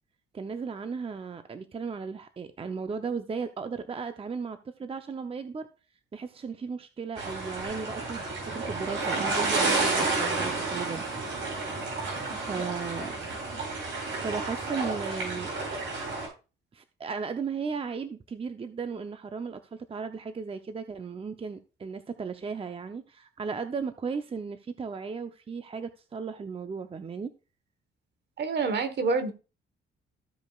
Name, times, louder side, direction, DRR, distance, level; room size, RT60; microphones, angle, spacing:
voice 1, 0.3-5.7 6.1-11.0 11.7-11.8 12.3-13.2 14.2-15.5 16.7-27.3, right 5 dB, 30° right, 0.7 m, -36 dB
sound 1, 7.2-16.3, right 3 dB, 80° right, 4.4 m, -30 dB
voice 2, 28.4-29.3, right 4 dB, 60° right, 1.3 m, -27 dB
14.5 x 5.3 x 2.4 m
cardioid pair, 90°, 20 cm